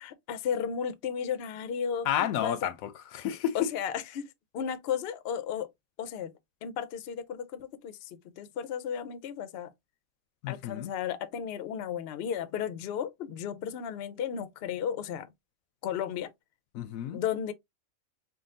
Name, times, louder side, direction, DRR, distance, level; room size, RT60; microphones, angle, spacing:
voice 1, 0.0-2.7 3.5-5.7 6.0-6.3 6.6-9.7 10.5-15.3 15.8-16.3 17.1-17.5, left 8 dB, 60° left, 0.7 m, -34 dB
voice 2, 2.0-3.6 10.4-10.9 16.7-17.2, left 10 dB, 80° left, 1.0 m, -31 dB
3.7 x 2.3 x 3.7 m
omnidirectional pair, 1.4 m